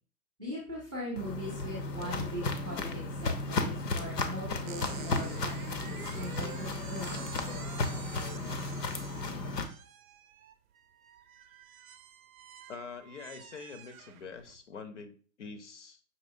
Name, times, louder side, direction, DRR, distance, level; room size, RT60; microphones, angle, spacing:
voice 1, 0.4-7.2, equal, 5° right, -7 dB, 0.4 m, -40 dB
Walk footsteps, 1.2-9.6, left 3 dB, 85° left, 0.8 m, -34 dB
sound 1, 4.6-14.6, right 9 dB, 60° right, 0.5 m, -49 dB
voice 2, 12.7-16.0, left 5 dB, 50° left, 8 dB, 0.5 m, -45 dB
5.4 x 3.0 x 2.5 m, 0.40 s
hypercardioid pair, 135°, 48 cm